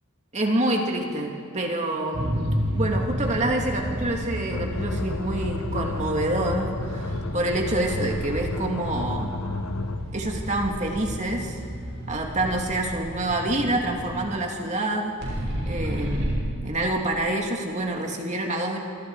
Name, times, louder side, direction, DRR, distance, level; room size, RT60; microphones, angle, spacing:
voice 1, 0.3-2.4 2.7-9.3 10.1-11.6 12.1-15.2 15.7-18.8, right 1 dB, 30° right, 1 dB, 2.6 m, -27 dB
sound 1, 2.1-14.2 15.2-16.3, equal, 50° right, 6.5 m, -31 dB
sound 2, 4.5-10.2, left 3 dB, 70° left, 0.9 m, -33 dB
28.5 x 25.5 x 5.0 m, 2.3 s
head